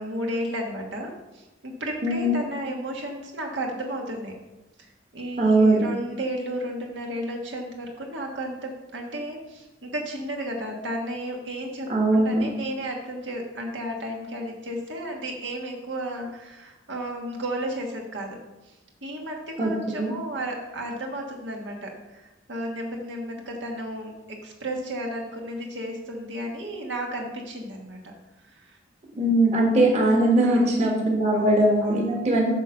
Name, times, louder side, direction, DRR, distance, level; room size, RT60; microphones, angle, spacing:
voice 1, 0.0-4.3 4.8-18.4 18.7-18.8 19.0-28.1 28.4-28.8 30.4-30.8 31.3-32.2, right 1 dB, 75° right, 1 dB, 1.5 m, -33 dB
voice 2, 2.0-2.3 5.4-5.9 11.9-12.4 19.6-19.7 20.0-20.1 29.2-32.6, right 1 dB, 35° right, -1 dB, 1.5 m, -20 dB
8.9 x 4.1 x 6.5 m, 1.0 s
head